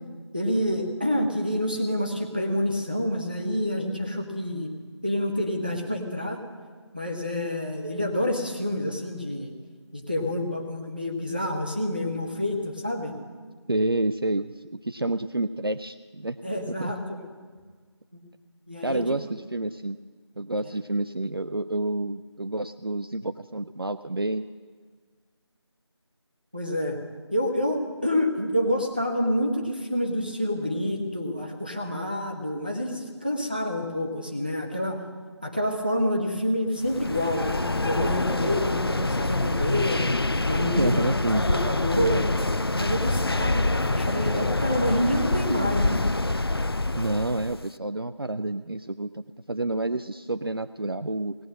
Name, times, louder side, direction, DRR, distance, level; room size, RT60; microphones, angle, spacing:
voice 1, 0.3-4.7 5.0-6.4 6.9-9.5 9.9-13.1 16.4-17.2 18.7-19.1 20.6-20.7 26.5-27.0 27.3-35.0 35.4-40.0 40.5-40.9 41.4-42.3 42.7-46.1, left 1 dB, 20° right, 1 dB, 0.9 m, -28 dB
voice 2, 13.7-16.4 16.8-16.9 18.8-20.0 20.4-24.4 40.8-41.4 46.9-49.2 49.5-51.4, right 2 dB, 55° right, 10 dB, 0.4 m, -29 dB
sound 1, 36.8-47.7, left 2 dB, 55° left, 0.5 m, -26 dB
18.0 x 7.7 x 7.5 m, 1.6 s
figure-of-eight pair, 180°, 15 cm